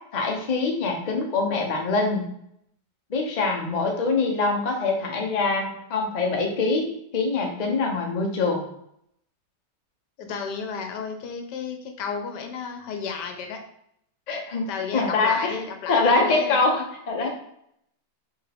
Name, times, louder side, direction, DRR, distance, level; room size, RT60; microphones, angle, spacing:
voice 1, 0.1-2.3 3.1-6.9 7.1-8.7 14.3-14.7 14.9-15.6 15.9-17.3, left 3 dB, 55° left, 1 dB, 0.4 m, -24 dB
voice 2, 10.2-13.6 14.7-16.6, left 6 dB, 75° left, 5 dB, 1.2 m, -33 dB
4.7 x 3.2 x 3.4 m, 0.73 s
omnidirectional pair, 1.9 m